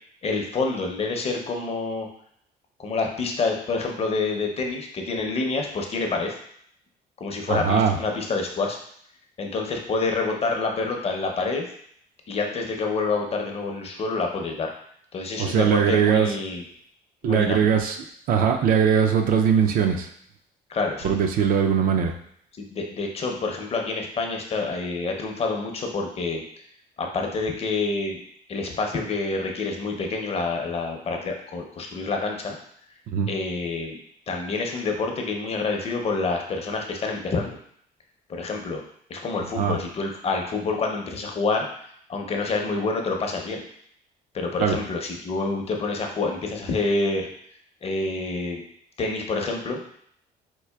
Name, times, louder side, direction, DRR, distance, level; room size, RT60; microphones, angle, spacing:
voice 1, 0.2-2.1 2.8-6.4 7.2-8.8 9.4-11.7 12.3-14.7 15.1-16.6 17.2-17.7 20.7-21.2 22.6-26.4 27.0-28.2 28.5-32.6 33.3-34.0 34.3-37.6 38.3-38.8 39.1-41.7 42.1-43.6 44.3-47.3 47.8-48.6 49.0-49.8, left 3 dB, 35° left, 2 dB, 0.6 m, -27 dB
voice 2, 7.5-8.0 15.4-16.3 17.2-18.0 18.3-20.1 21.0-22.1 33.1-33.3 39.6-39.8 44.6-44.8, right 7 dB, 60° right, 5 dB, 0.4 m, -20 dB
4.6 x 2.4 x 2.3 m, 0.66 s
cardioid pair, 110°, 17 cm